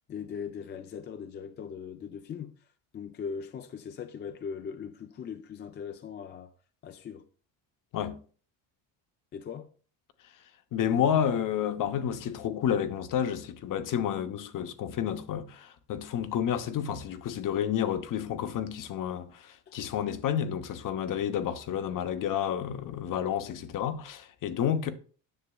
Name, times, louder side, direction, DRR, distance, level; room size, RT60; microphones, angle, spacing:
voice 1, 0.1-2.6 2.9-6.5 6.8-7.3 9.3-9.7 19.7-19.8, left 7 dB, 25° left, 0.4 m, -39 dB
voice 2, 10.7-24.9, left 9 dB, 45° left, 0.8 m, -30 dB
10.0 x 6.5 x 2.3 m
cardioid pair, 110°, 44 cm